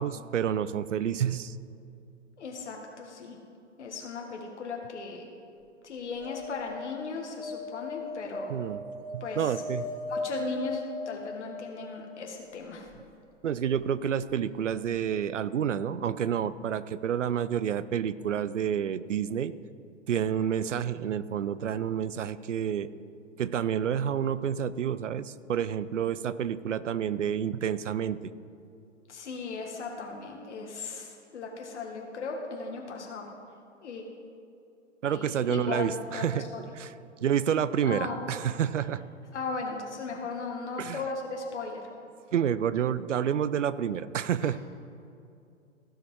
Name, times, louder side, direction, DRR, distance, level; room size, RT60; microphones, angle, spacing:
voice 1, 0.0-1.5 8.5-8.8 9.1-9.9 13.4-19.5 20.1-22.9 23.4-28.3 35.0-36.5 36.8-36.9 37.2-39.0 40.8-41.0 42.3-44.6, right 9 dB, 75° right, 16 dB, 0.5 m, -29 dB
voice 2, 2.4-3.4 3.8-5.3 5.8-8.6 9.2-9.5 10.1-12.9 29.1-33.3 33.8-34.0 35.1-36.6 37.8-38.3 39.3-41.8 44.4-44.6, left 4 dB, 65° left, 1 dB, 1.5 m, -37 dB
sound 1, 6.2-12.4 14.6-14.7 14.9-15.0, left 2 dB, 30° left, 1.6 m, -38 dB
15.5 x 5.2 x 4.7 m, 2.6 s
figure-of-eight pair, 120°, 37 cm